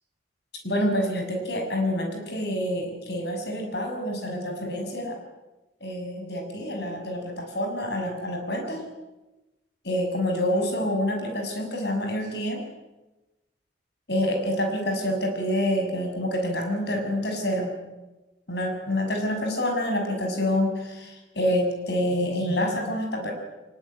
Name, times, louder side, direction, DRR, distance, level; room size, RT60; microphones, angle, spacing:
voice 1, 0.6-5.2 5.8-8.8 9.8-12.6 14.1-17.7 18.5-23.3, left 1 dB, 65° left, 3 dB, 6.4 m, -27 dB
22.5 x 20.5 x 9.8 m, 1.1 s
head